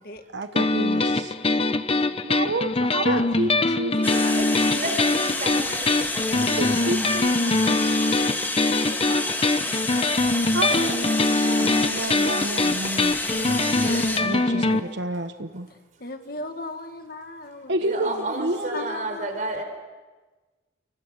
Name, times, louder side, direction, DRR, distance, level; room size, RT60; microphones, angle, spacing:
voice 1, 0.3-1.3 2.2-4.2 6.4-7.3 10.5-10.7 11.6-13.1 14.2-15.7 17.7-18.9, right 2 dB, 75° right, 8 dB, 1.2 m, -29 dB
sound 1, 0.6-14.8, left 2 dB, 30° left, 0.8 m, -23 dB
sound 2, 4.0-14.2, left 2 dB, 10° left, 2.0 m, -29 dB
voice 2, 4.0-6.4 6.7-7.1 7.6-7.8 8.1-8.2 9.0-9.5 10.7-10.9 11.4-11.7 12.2-12.5 13.2-14.8 17.8-19.6, right 2 dB, 45° right, 5 dB, 4.7 m, -34 dB
voice 3, 6.5-7.6 8.2-9.3 16.0-18.3 18.7-19.3, left 2 dB, 50° left, 6 dB, 2.0 m, -38 dB
30.0 x 24.0 x 6.6 m, 1.3 s
head